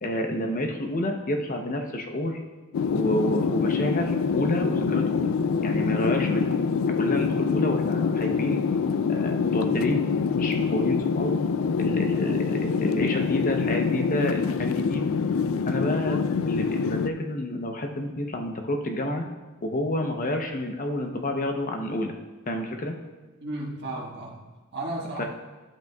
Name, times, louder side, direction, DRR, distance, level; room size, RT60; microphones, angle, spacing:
voice 1, 0.0-2.4 2.9-5.3 5.6-6.5 7.0-8.6 9.1-10.1 10.3-11.4 11.7-15.1 15.6-16.2 16.4-19.3 19.6-22.1 22.5-22.9 25.2-25.3, left 1 dB, 40° left, 3 dB, 0.8 m, -29 dB
sound 1, 2.7-17.1, left 5 dB, 65° left, 0.4 m, -25 dB
voice 2, 23.4-25.3, right 1 dB, 55° right, -4 dB, 1.6 m, -34 dB
12.0 x 8.1 x 2.3 m, 1.3 s
head